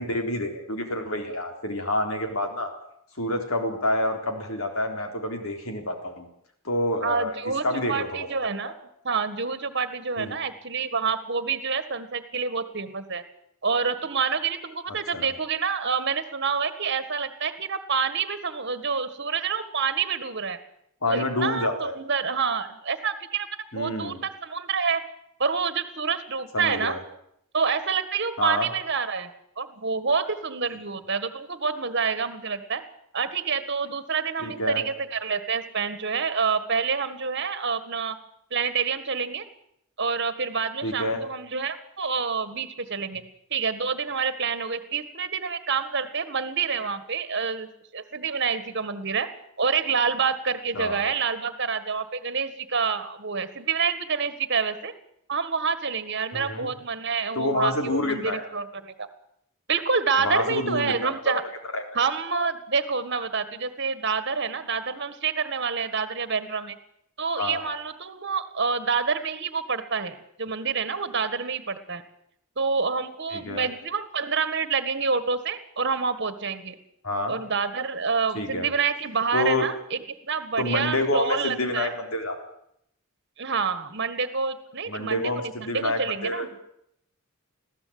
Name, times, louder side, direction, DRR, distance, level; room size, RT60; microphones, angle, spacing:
voice 1, 0.0-2.7 3.2-6.3 6.6-7.3 7.6-8.7 10.2-10.4 14.9-15.3 21.0-21.9 23.7-24.2 26.5-27.0 28.4-28.7 34.4-34.8 40.8-41.2 50.7-51.0 56.3-56.7 57.3-58.4 60.2-61.4 61.7-61.8 67.4-67.6 73.3-73.7 77.0-77.4 78.3-78.7 79.3-79.7 80.6-82.4 84.9-86.5, left 1 dB, 70° left, 4 dB, 3.8 m, -28 dB
voice 2, 7.0-8.7 9.0-13.2 13.6-20.6 21.1-23.5 23.7-25.0 25.4-27.0 27.5-29.3 29.6-32.8 33.1-38.2 38.5-39.5 40.0-43.2 43.5-49.3 49.6-54.9 55.3-59.1 59.7-61.4 62.0-66.8 67.2-72.0 72.6-76.8 77.3-82.0 83.4-86.5, right 5 dB, 55° right, 11 dB, 1.7 m, -27 dB
21.0 x 15.0 x 8.8 m, 0.74 s
head